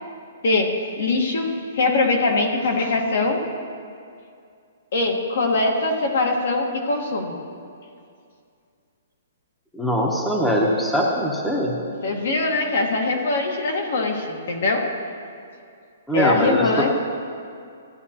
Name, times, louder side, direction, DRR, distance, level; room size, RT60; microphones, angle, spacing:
voice 1, 0.4-1.5 1.7-3.4 4.9-7.4 12.0-14.9 16.1-16.9, left 3 dB, 65° left, 2 dB, 1.4 m, -22 dB
voice 2, 9.7-11.8 16.1-16.9, equal, 5° left, -2 dB, 0.8 m, -22 dB
15.5 x 9.6 x 2.9 m, 2.4 s
hypercardioid pair, 165°, 0 cm